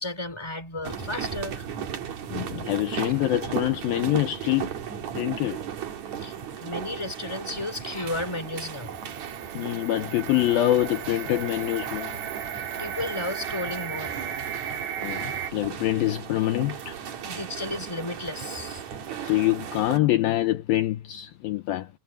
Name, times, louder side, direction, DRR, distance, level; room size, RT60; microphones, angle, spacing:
voice 1, 0.0-1.7 2.9-3.2 6.2-9.0 12.8-14.1 17.2-18.8, left 2 dB, 5° left, 3.7 m, -33 dB
sound 1, 0.8-20.0, right 8 dB, 55° right, 2.6 m, -36 dB
voice 2, 2.3-4.7 5.2-5.6 9.6-12.2 15.0-17.0 19.2-21.9, left 15 dB, 75° left, 2.5 m, -25 dB
sound 2, 8.1-15.5, right 8 dB, 75° right, 5.0 m, -36 dB
omnidirectional pair, 4.8 m